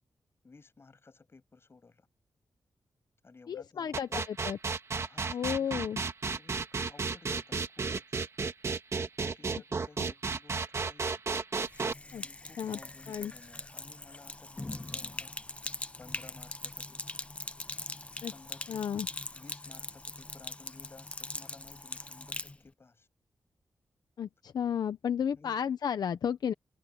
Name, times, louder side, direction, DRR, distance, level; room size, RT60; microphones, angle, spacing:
voice 1, 0.4-2.1 3.2-4.2 5.1-6.0 6.3-8.2 9.2-11.2 12.2-15.3 16.0-17.3 18.3-18.8 19.3-23.1 25.3-25.7, left 4 dB, 35° left, 7.4 m, -56 dB
voice 2, 3.5-4.6 5.3-6.0 10.0-10.1 12.1-12.2 12.6-12.8 13.1-13.3 18.2-18.3 18.7-19.1 24.2-26.5, left 8 dB, 75° left, 0.8 m, -33 dB
sound 1, 3.9-11.9, right 4 dB, 40° right, 1.9 m, -32 dB
Sink (filling or washing), 11.6-22.6, left 2 dB, 20° left, 0.9 m, -41 dB
wide cardioid pair, 130°, 7 cm